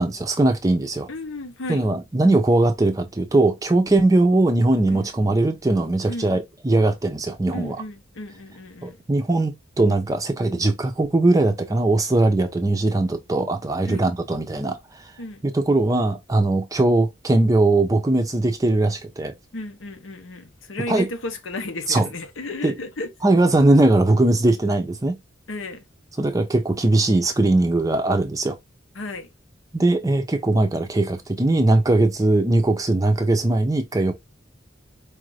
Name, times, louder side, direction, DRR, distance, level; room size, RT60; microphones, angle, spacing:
voice 1, 0.0-1.1 1.7-7.8 8.8-14.8 15.4-19.3 20.9-21.1 21.9-22.1 22.6-22.7 23.2-25.2 26.2-28.6 29.7-34.1, right 2 dB, 15° right, 0.5 m, -20 dB
voice 2, 1.1-1.8 4.9-5.1 6.1-6.3 7.5-9.0 13.9-14.1 15.2-15.4 19.5-23.1 25.5-25.8 28.9-29.3, left 2 dB, 80° left, 0.9 m, -33 dB
4.8 x 2.5 x 3.1 m
head